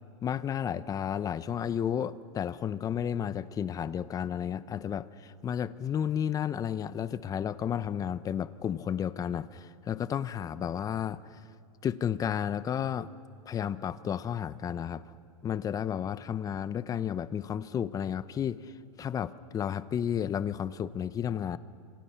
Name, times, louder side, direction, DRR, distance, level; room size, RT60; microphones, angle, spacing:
voice 1, 0.2-11.4 11.8-13.1 13.5-15.0 15.4-18.7 19.0-21.6, left 9 dB, 20° left, 15 dB, 0.7 m, -32 dB
28.5 x 26.5 x 5.8 m, 2.3 s
supercardioid pair, 140°, 17 cm